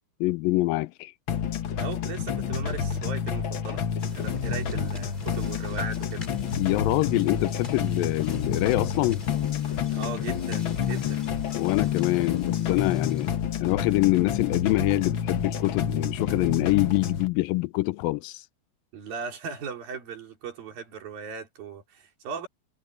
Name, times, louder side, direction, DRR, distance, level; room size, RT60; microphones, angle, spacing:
voice 1, 0.2-1.1 6.6-9.2 11.6-13.3 13.6-18.4, left 20 dB, 85° left, 2.3 m, -25 dB
sound 1, 1.3-17.3, left 8 dB, 65° left, 1.3 m, -29 dB
voice 2, 1.8-3.8 4.1-6.3 9.9-11.2 18.9-22.5, right 6 dB, 80° right, 5.5 m, -38 dB
sound 2, 4.0-13.4, left 1 dB, 15° left, 4.3 m, -50 dB
omnidirectional pair, 4.0 m